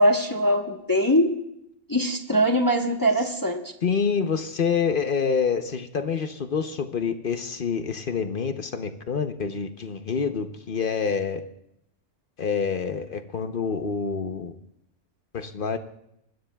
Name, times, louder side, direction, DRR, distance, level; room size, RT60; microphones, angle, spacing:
voice 1, 0.0-1.3 1.9-3.6, equal, 20° left, 2 dB, 1.0 m, -21 dB
voice 2, 3.8-11.4 12.4-14.5 15.3-15.8, left 6 dB, 50° left, 8 dB, 0.8 m, -27 dB
25.0 x 20.5 x 2.3 m, 0.80 s
omnidirectional pair, 1.3 m